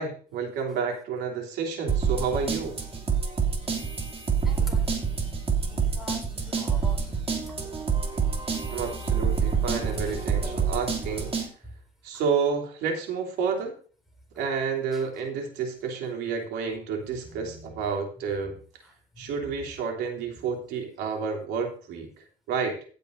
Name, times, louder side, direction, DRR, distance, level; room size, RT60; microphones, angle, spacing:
voice 1, 0.0-2.7 8.7-11.3 12.0-13.7 14.4-18.6 19.2-22.8, right 5 dB, 85° right, 3 dB, 3.1 m, -30 dB
sound 1, 1.9-11.5, right 6 dB, 35° right, 2.8 m, -27 dB
voice 2, 4.3-7.7 10.1-10.2 10.4-10.7 14.9-15.0 17.2-17.8 18.4-18.6 19.2-19.3 19.5-19.7, left 2 dB, ahead, 3 dB, 4.7 m, -45 dB
16.5 x 8.4 x 2.7 m, 0.40 s
cardioid pair, 110°, 17 cm